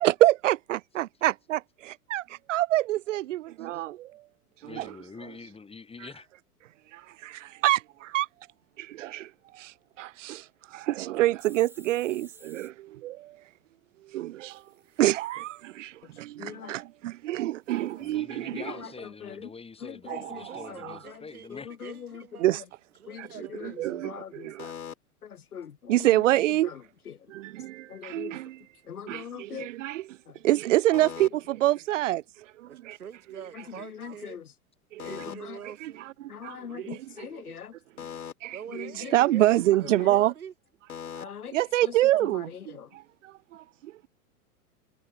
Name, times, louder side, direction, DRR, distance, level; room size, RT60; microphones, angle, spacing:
voice 1, 0.0-4.2 4.6-4.9 6.9-8.3 8.8-13.4 14.0-14.6 15.0-18.7 20.1-21.0 22.4-22.6 23.2-23.3 23.6-24.7 25.9-26.7 27.3-28.6 29.1-30.2 30.4-33.0 34.9-35.0 35.8-35.9 36.2-37.3 38.4-40.3 41.2-41.3 41.5-43.9, right 15 dB, 55° right, 1.2 m, -27 dB
voice 2, 4.6-6.3 18.0-21.7, left 4 dB, 10° left, 5.9 m, -45 dB
sound 1, 11.4-12.7 14.5-15.5 17.7-18.2, right 2 dB, 5° right, 2.6 m, -54 dB
voice 3, 16.4-16.8 18.5-19.5 19.8-21.2 21.5-22.3 23.1-24.9 25.2-26.3 26.6-27.2 27.9-28.4 28.9-29.7 30.3-30.4 30.9-31.4 33.5-34.5 35.0-35.6 36.3-38.3 38.7-39.2 39.8-40.2 40.9-41.9 42.2-42.9, left 8 dB, 75° left, 1.8 m, -41 dB
voice 4, 20.1-22.5 23.0-23.8 32.7-34.4 35.0-36.1 36.6-37.0 38.5-40.5, right 8 dB, 70° right, 3.6 m, -45 dB
figure-of-eight pair, 100°, 45 cm